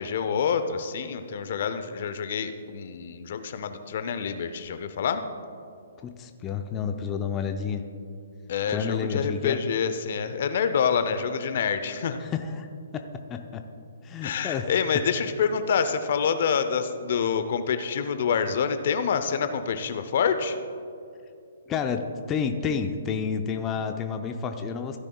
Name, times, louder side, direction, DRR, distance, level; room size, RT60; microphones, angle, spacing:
voice 1, 0.0-5.2 8.5-12.2 14.2-20.6, left 6 dB, 55° left, 10 dB, 0.7 m, -27 dB
voice 2, 6.0-7.9 8.7-9.6 12.2-12.7 12.9-13.6 14.0-14.7 21.7-25.0, left 6 dB, 20° left, 5 dB, 0.6 m, -30 dB
15.5 x 9.8 x 2.3 m, 2.5 s
hypercardioid pair, 135°, 0 cm